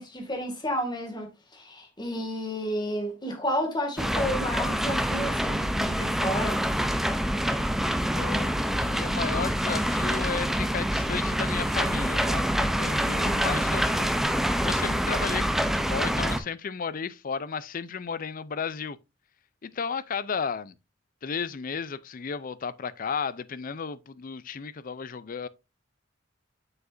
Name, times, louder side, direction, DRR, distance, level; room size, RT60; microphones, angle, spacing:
voice 1, 0.0-6.6 13.0-13.5, equal, 25° left, 2.0 m, -32 dB
sound 1, 4.0-16.4, equal, ahead, 0.5 m, -26 dB
voice 2, 8.1-12.5 12.8-15.5 15.7-19.0 19.6-20.7 21.2-25.5, left 6 dB, 45° left, 0.5 m, -34 dB
7.2 x 6.4 x 2.6 m
head